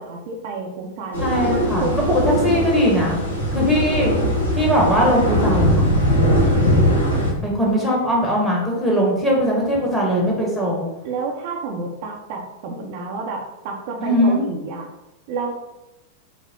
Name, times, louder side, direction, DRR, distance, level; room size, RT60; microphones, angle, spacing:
voice 1, 0.0-2.6 6.5-7.4 11.0-14.9 15.3-15.5, right 4 dB, 50° right, 1 dB, 0.7 m, -30 dB
sound 1, 1.1-7.3, equal, 70° left, 1.1 m, -20 dB
voice 2, 1.2-3.2 3.5-4.1 4.5-5.9 7.4-10.8 14.0-14.5, equal, 10° left, -3 dB, 1.5 m, -20 dB
5.9 x 2.1 x 3.7 m, 0.94 s
figure-of-eight pair, 90°, 0 cm